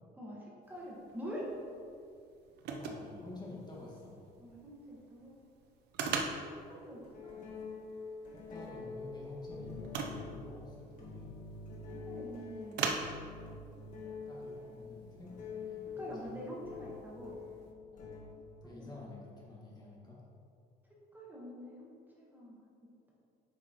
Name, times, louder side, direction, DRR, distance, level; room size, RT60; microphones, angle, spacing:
voice 1, 0.2-1.5 4.4-5.3 6.4-7.3 12.1-12.8 16.0-17.4 18.6-19.0 21.1-22.6, equal, 10° right, -5 dB, 1.5 m, -46 dB
sound 1, 0.6-17.7, right 5 dB, 80° right, 0.8 m, -44 dB
voice 2, 2.6-4.2 6.0-6.2 8.3-11.3 14.3-15.3 15.6-16.5 17.9-18.1 18.6-20.2, left 2 dB, 25° left, -4 dB, 1.8 m, -49 dB
sound 2, 4.5-4.6 6.3-6.5 7.0-18.6, left 4 dB, 45° left, 1.6 m, -46 dB
8.7 x 6.0 x 3.0 m, 2.4 s
cardioid pair, 110°, 17 cm